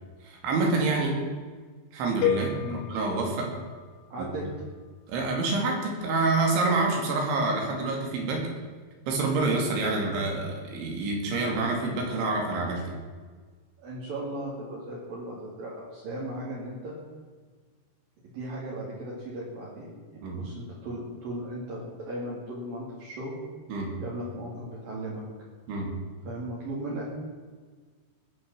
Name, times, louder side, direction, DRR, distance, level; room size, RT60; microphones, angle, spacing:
voice 1, 0.2-1.2 1.9-3.5 4.2-4.3 5.1-8.5 9.1-12.9 20.2-20.4 23.7-23.9 25.7-25.9, right 3 dB, 75° right, 1 dB, 4.7 m, -27 dB
sound 1, 2.2-4.3, left 9 dB, 85° left, 3.0 m, -31 dB
voice 2, 4.1-4.5 13.8-17.0 18.3-23.4 24.0-25.2 26.2-27.1, right 1 dB, 55° right, -5 dB, 3.7 m, -37 dB
20.0 x 6.9 x 7.5 m, 1.5 s
omnidirectional pair, 5.4 m